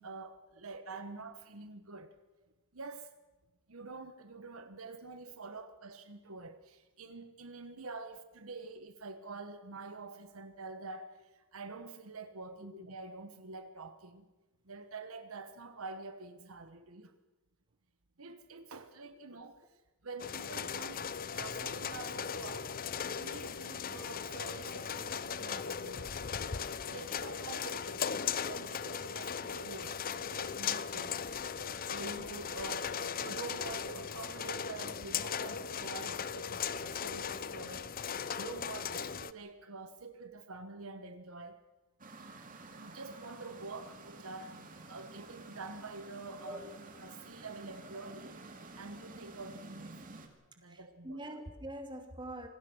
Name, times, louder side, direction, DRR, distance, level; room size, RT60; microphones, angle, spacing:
voice 1, 0.0-2.1 2.7-3.1 3.7-14.3 14.6-17.1 18.2-19.8 20.0-22.7 23.2-26.3 26.9-28.1 28.4-31.2 31.5-41.6 42.8-44.6 44.9-46.7 47.0-48.4 48.8-49.9 50.6-51.2, right 3 dB, 70° right, 1.3 m, -47 dB
sound 1, 20.2-39.3, left 7 dB, 40° left, 0.6 m, -38 dB
sound 2, 42.0-50.3, right 2 dB, 40° right, 2.5 m, -50 dB
voice 2, 50.6-52.5, right 1 dB, 20° right, 2.7 m, -44 dB
26.5 x 18.5 x 6.4 m
head